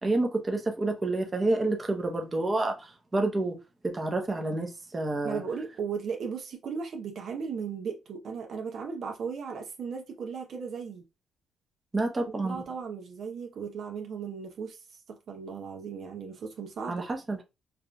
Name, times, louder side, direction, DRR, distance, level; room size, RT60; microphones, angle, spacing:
voice 1, 0.0-3.6 3.8-5.4 11.9-12.6 16.9-17.4, right 2 dB, 25° right, 0.8 m, -29 dB
voice 2, 5.2-11.0 12.4-17.1, right 6 dB, 60° right, 0.7 m, -36 dB
4.7 x 2.5 x 2.3 m
cardioid pair, 90°, 0 cm